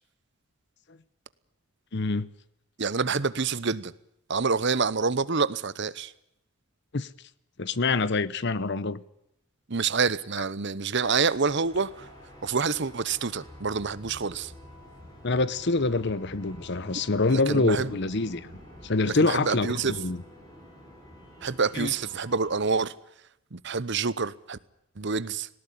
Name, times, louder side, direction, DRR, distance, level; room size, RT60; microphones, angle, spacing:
voice 1, 1.9-2.3 6.9-7.1 7.6-9.0 15.2-18.5 18.8-20.2 21.7-21.9, left 3 dB, 50° left, 0.9 m, -26 dB
voice 2, 2.8-3.9 4.3-6.1 9.7-12.1 12.4-14.5 17.3-17.9 19.2-19.9 21.4-22.9 23.5-24.6 25.0-25.5, right 5 dB, 55° right, 0.9 m, -27 dB
sound 1, 11.0-22.9, equal, 20° left, 6.3 m, -48 dB
19.0 x 18.0 x 10.0 m
head